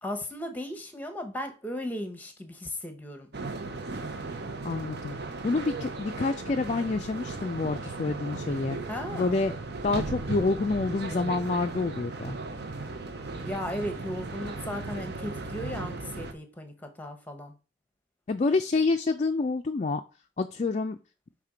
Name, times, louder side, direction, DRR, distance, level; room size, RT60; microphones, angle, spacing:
voice 1, 0.0-3.3 8.9-9.4 13.4-17.5, left 1 dB, 10° left, 0.9 m, -36 dB
sound 1, 3.3-16.3, right 3 dB, 55° right, 0.7 m, -36 dB
voice 2, 4.6-5.2 5.4-8.8 9.2-9.5 9.8-12.4 18.3-20.0 20.4-21.0, left 3 dB, 35° left, 0.4 m, -27 dB
5.9 x 3.5 x 4.9 m
head